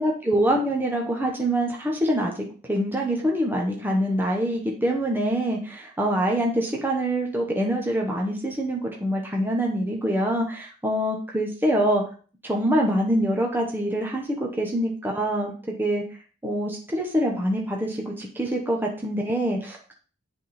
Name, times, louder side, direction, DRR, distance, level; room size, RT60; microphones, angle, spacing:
voice 1, 0.0-2.3 2.7-12.0 12.4-16.0 16.4-19.9, right 1 dB, 10° right, 0 dB, 0.9 m, -25 dB
8.2 x 3.6 x 4.2 m, 0.40 s
head